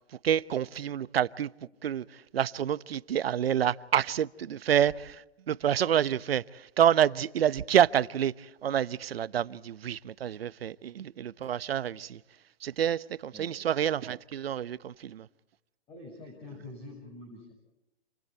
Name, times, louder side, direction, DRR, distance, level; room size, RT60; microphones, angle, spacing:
voice 1, 0.2-1.5 1.8-12.2 12.6-15.3, right 9 dB, 65° right, 0.9 m, -28 dB
voice 2, 15.9-17.5, left 2 dB, 15° left, 6.6 m, -46 dB
29.0 x 28.0 x 4.5 m
hypercardioid pair, 145°, 32 cm